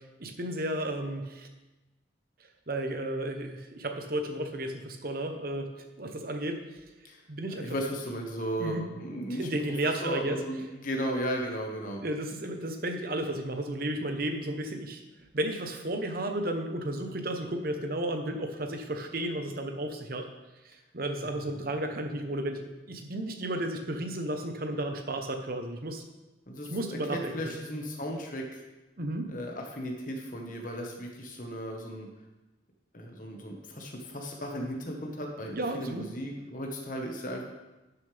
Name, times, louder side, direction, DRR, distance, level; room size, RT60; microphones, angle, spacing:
voice 1, 0.2-1.5 2.7-6.6 7.3-7.7 8.6-8.9 9.4-10.4 12.0-15.0 15.3-20.3 20.6-26.0 26.7-27.6 29.0-29.3 35.5-36.1, right 1 dB, 50° right, 5 dB, 1.0 m, -33 dB
voice 2, 7.6-9.5 10.0-12.0 21.3-21.4 26.5-28.6 29.3-32.1 32.9-37.4, equal, 45° left, 0 dB, 1.5 m, -35 dB
12.0 x 7.2 x 3.5 m, 1.1 s
head